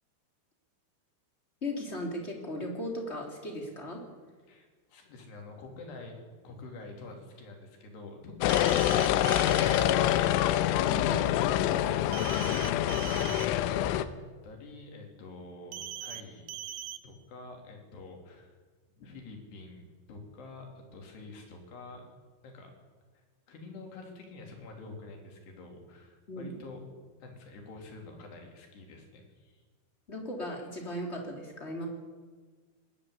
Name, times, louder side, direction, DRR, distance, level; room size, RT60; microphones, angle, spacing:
voice 1, 1.6-4.0 10.8-11.2 26.3-26.5 30.1-31.9, left 1 dB, 15° left, 1 dB, 3.0 m, -37 dB
voice 2, 4.5-6.2 6.4-8.7 9.0-10.9 14.4-16.5 17.0-18.5 19.0-22.1 22.4-22.7 23.1-26.8 27.2-29.6, left 3 dB, 60° left, 2 dB, 5.1 m, -47 dB
sound 1, 8.4-14.1, left 12 dB, 85° left, 3.2 m, -26 dB
sound 2, 8.5-9.8 12.1-13.5 15.7-16.2 16.5-17.0, right 12 dB, 80° right, 2.2 m, -40 dB
21.0 x 14.5 x 9.9 m, 1.5 s
omnidirectional pair, 5.7 m